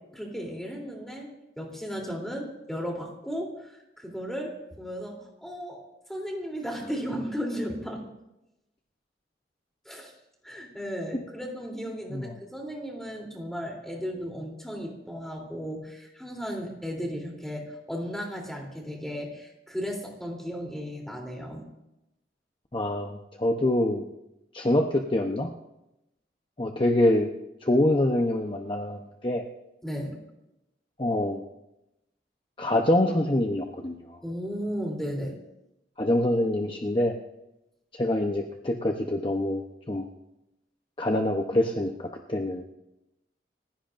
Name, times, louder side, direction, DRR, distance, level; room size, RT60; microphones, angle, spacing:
voice 1, 0.1-5.8 6.1-8.1 9.8-10.1 10.4-21.7 29.8-30.2 34.2-35.3, equal, ahead, -1 dB, 3.3 m, -35 dB
voice 2, 22.7-24.1 24.5-25.5 26.6-27.3 27.6-29.4 31.0-31.4 32.6-34.2 36.0-37.1 37.9-39.6 39.9-40.1 41.0-42.6, left 1 dB, 30° left, 2 dB, 0.8 m, -25 dB
29.5 x 16.0 x 2.6 m, 0.91 s
head